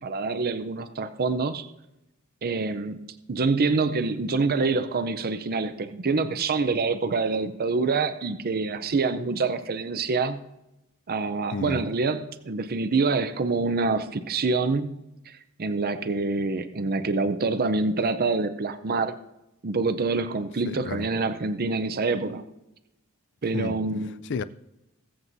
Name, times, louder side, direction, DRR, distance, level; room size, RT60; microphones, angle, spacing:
voice 1, 0.0-1.7 2.4-10.4 11.1-15.0 15.3-19.1 19.6-22.4 23.4-24.1, right 4 dB, 45° right, 0.6 m, -26 dB
voice 2, 11.5-11.8 20.6-21.1 23.5-23.8 24.3-24.4, left 5 dB, 55° left, 0.4 m, -31 dB
21.0 x 7.8 x 2.7 m
head